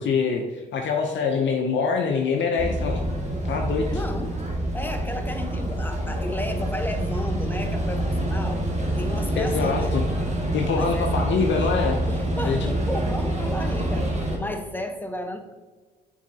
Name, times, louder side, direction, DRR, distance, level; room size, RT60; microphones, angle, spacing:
voice 1, 0.0-3.0 3.5-4.0 9.3-10.1 10.5-12.0 12.4-12.7, left 5 dB, 60° left, 2 dB, 0.7 m, -24 dB
sound 1, 2.6-14.4, right 1 dB, 30° right, 1.8 m, -26 dB
voice 2, 3.9-4.4 4.7-8.6 9.0-10.0 10.8-11.4 12.1-14.1 14.4-15.5, left 1 dB, 10° left, 6 dB, 0.9 m, -33 dB
7.2 x 4.7 x 2.8 m, 1.3 s
supercardioid pair, 55°, 21 cm